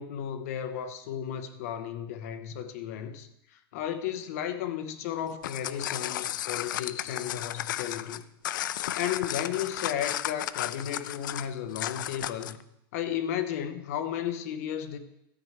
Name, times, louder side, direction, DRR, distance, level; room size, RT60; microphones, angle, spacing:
voice 1, 0.0-8.2 8.9-12.6 12.9-15.0, left 9 dB, 40° left, 9 dB, 0.8 m, -34 dB
sound 1, 5.3-12.6, left 12 dB, 55° left, 0.4 m, -34 dB
13.0 x 4.5 x 7.3 m, 0.82 s
supercardioid pair, 175°, 13 cm